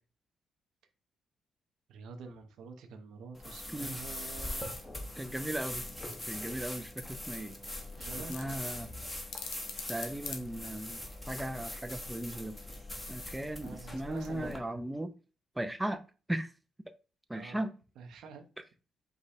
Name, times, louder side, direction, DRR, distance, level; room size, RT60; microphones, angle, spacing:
voice 1, 1.9-4.8 8.0-8.4 13.6-14.8 17.3-17.6 18.0-18.4, right 5 dB, 80° right, 6 dB, 0.8 m, -47 dB
sound 1, 3.3-14.6, left 1 dB, 10° left, 1.1 m, -42 dB
voice 2, 5.2-5.9 6.3-7.6 8.3-8.9 9.9-11.0 11.3-12.6 13.1-15.1 15.6-16.0 16.3-16.5 17.3-17.7, right 1 dB, 10° right, 9 dB, 0.4 m, -37 dB
sound 2, 6.1-11.2, left 6 dB, 80° left, 0.8 m, -46 dB
4.9 x 2.2 x 4.2 m, 0.34 s
cardioid pair, 90°, 0 cm